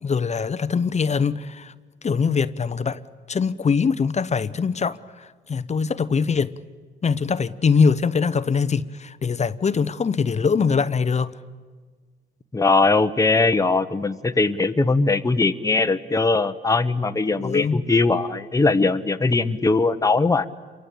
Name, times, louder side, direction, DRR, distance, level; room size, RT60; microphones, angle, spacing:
voice 1, 0.0-1.7 2.0-3.0 3.3-6.5 7.0-11.3 17.4-17.8, left 5 dB, 35° left, 0.9 m, -22 dB
voice 2, 12.5-20.5, left 3 dB, 15° left, 1.1 m, -20 dB
28.5 x 23.5 x 8.6 m
cardioid pair, 90°, 20 cm